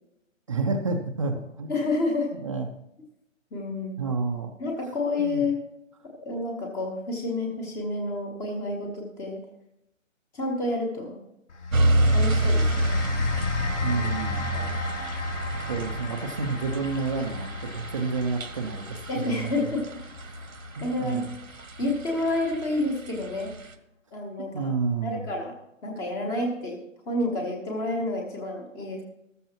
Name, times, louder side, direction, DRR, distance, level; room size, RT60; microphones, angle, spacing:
voice 1, 0.5-1.7 2.4-2.7 4.0-4.5 5.2-5.4 13.8-14.5 15.5-19.7 20.3-20.5 20.8-21.3 24.5-25.3, right 4 dB, 25° right, 2 dB, 0.7 m, -30 dB
voice 2, 1.7-2.3 3.5-4.0 4.6-5.6 6.2-9.4 10.3-11.2 12.1-13.0 13.9-14.0 14.5-14.7 19.1-20.0 20.8-21.2 21.8-23.5 24.1-24.7 25.0-25.5 25.8-29.0, left 2 dB, 5° left, 2 dB, 0.9 m, -29 dB
sound 1, 11.5-22.0, left 4 dB, 60° left, 3.2 m, -34 dB
sound 2, 11.7-23.7, right 2 dB, 75° right, 1.6 m, -29 dB
13.5 x 13.5 x 2.9 m, 0.84 s
figure-of-eight pair, 145°, 40 cm